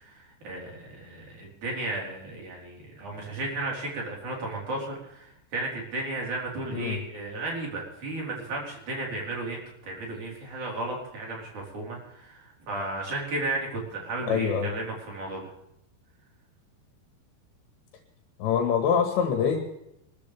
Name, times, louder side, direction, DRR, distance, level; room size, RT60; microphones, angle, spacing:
voice 1, 0.0-15.5, right 2 dB, 45° right, -1 dB, 5.3 m, -34 dB
voice 2, 14.3-14.7 18.4-19.6, left 7 dB, 80° left, 4 dB, 3.8 m, -24 dB
24.5 x 14.0 x 3.4 m, 0.81 s
omnidirectional pair, 5.1 m